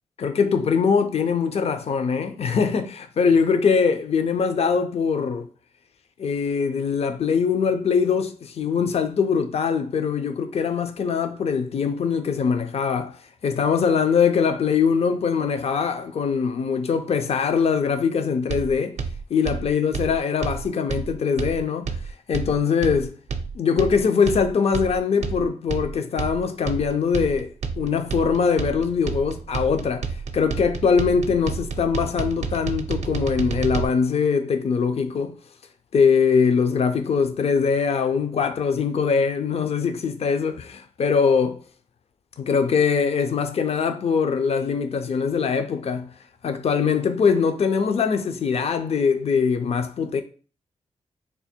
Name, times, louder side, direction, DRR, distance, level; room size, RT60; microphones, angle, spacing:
voice 1, 0.2-5.5 6.2-13.2 13.4-19.0 19.3-21.9 22.3-23.1 23.5-35.3 35.9-41.6 42.4-46.1 46.4-50.2, left 6 dB, 60° left, 0.5 m, -22 dB
sound 1, 18.5-33.9, right 5 dB, 70° right, 0.5 m, -30 dB
3.4 x 2.1 x 4.2 m
cardioid pair, 60°, 12 cm